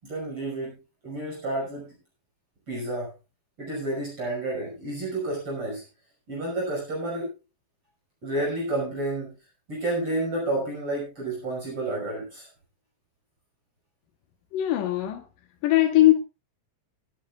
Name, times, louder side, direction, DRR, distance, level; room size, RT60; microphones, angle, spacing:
voice 1, 0.0-0.8 1.0-1.9 2.7-3.1 3.6-5.8 6.3-7.3 8.2-9.3 9.7-12.5, right 2 dB, 35° right, 6.7 m, -30 dB
voice 2, 14.5-15.2 15.6-16.2, left 15 dB, 70° left, 2.8 m, -20 dB
24.0 x 9.9 x 2.4 m
omnidirectional pair, 4.2 m